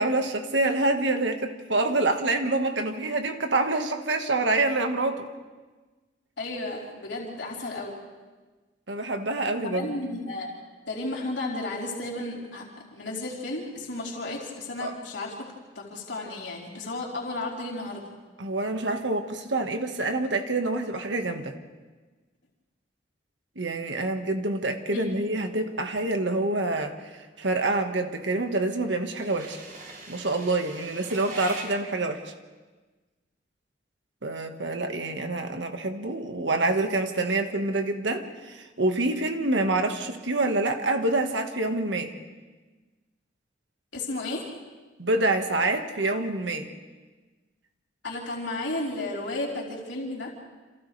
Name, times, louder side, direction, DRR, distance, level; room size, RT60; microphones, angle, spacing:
voice 1, 0.0-5.3 8.9-10.0 14.8-14.9 18.4-21.5 23.6-29.6 30.1-32.3 34.2-42.1 45.0-46.7, right 2 dB, 85° right, 5 dB, 1.7 m, -27 dB
voice 2, 6.4-8.0 9.6-10.5 10.9-15.5 15.7-18.1 24.9-25.2 43.9-44.5 48.0-50.3, left 2 dB, 90° left, -3 dB, 4.1 m, -33 dB
sound 1, 25.3-31.6, right 3 dB, 55° right, 5.5 m, -43 dB
29.5 x 27.0 x 3.4 m, 1.3 s
head